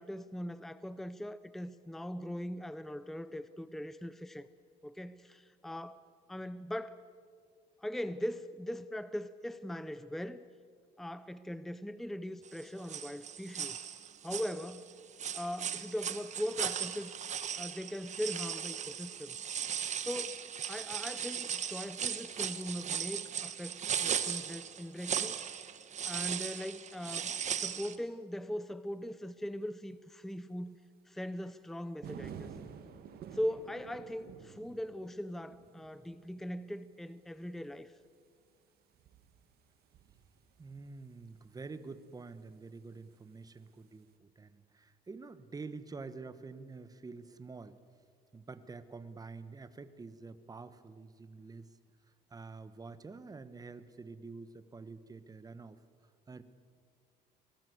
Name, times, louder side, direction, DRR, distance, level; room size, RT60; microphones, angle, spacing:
voice 1, 0.0-4.5 4.8-7.1 7.8-10.4 11.0-13.8 14.2-14.9 15.3-17.2 17.6-19.4 20.0-20.4 20.7-25.4 26.0-30.8 31.1-32.5 33.3-37.9, equal, ahead, 0.6 m, -40 dB
sound 1, 12.5-12.6 12.9-14.9 15.2-28.0, right 8 dB, 45° right, 1.3 m, -37 dB
sound 2, 32.0-42.2 43.6-43.8, right 8 dB, 65° right, 1.7 m, -51 dB
voice 2, 40.6-47.8 48.3-51.7 52.3-55.8 56.3-56.4, right 4 dB, 20° right, 1.2 m, -47 dB
24.0 x 19.0 x 8.0 m
cardioid pair, 110°, 17 cm